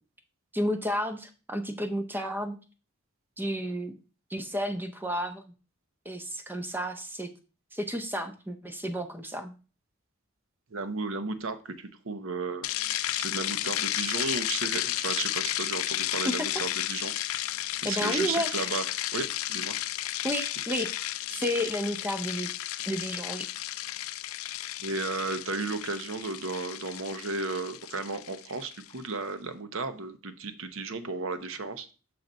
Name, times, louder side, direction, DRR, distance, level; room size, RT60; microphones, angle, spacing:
voice 1, 0.5-2.6 3.4-4.0 4.3-5.4 6.0-7.3 7.7-9.5 17.8-18.7 20.2-22.5 22.9-23.5, equal, 10° right, 7 dB, 0.6 m, -32 dB
voice 2, 10.7-12.7 13.1-17.1 17.8-18.9 19.1-19.8 24.8-31.9, right 3 dB, 70° right, 10 dB, 0.8 m, -34 dB
sound 1, 12.6-28.9, left 14 dB, 85° left, 0.4 m, -33 dB
6.0 x 3.9 x 5.3 m, 0.34 s
head